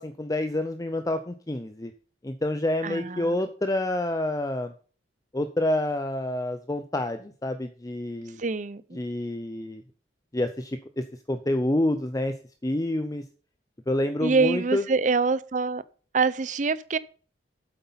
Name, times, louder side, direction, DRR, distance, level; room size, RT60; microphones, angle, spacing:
voice 1, 0.0-1.9 2.2-4.7 5.3-8.4 8.9-9.8 10.3-12.3 12.6-13.2 13.9-14.8, left 1 dB, 20° left, 0.6 m, -28 dB
voice 2, 2.8-3.4 8.4-9.0 14.2-15.8 16.1-17.0, right 4 dB, 45° right, 0.6 m, -25 dB
8.3 x 8.0 x 5.6 m
head